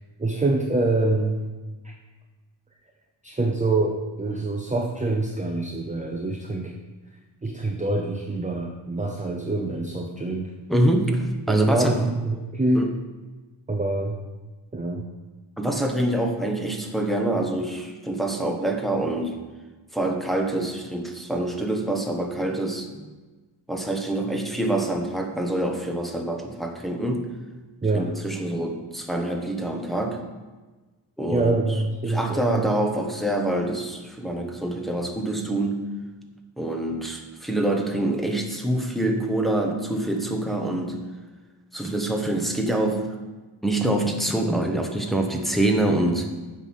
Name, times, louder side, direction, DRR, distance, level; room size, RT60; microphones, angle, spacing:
voice 1, 0.2-1.4 1.8-1.9 3.2-6.7 7.4-10.5 11.5-12.9 13.7-14.2 14.7-15.0 27.8-28.1 31.3-32.7, right 2 dB, 15° right, 1 dB, 0.6 m, -25 dB
voice 2, 10.7-11.9 12.7-12.9 15.6-19.3 19.9-23.0 23.7-27.3 27.9-30.2 31.2-31.6 32.0-35.9 36.6-41.0 41.7-43.1 43.6-46.3, right 1 dB, ahead, 2 dB, 1.0 m, -25 dB
8.0 x 5.8 x 5.6 m, 1.2 s
wide cardioid pair, 130°, 48 cm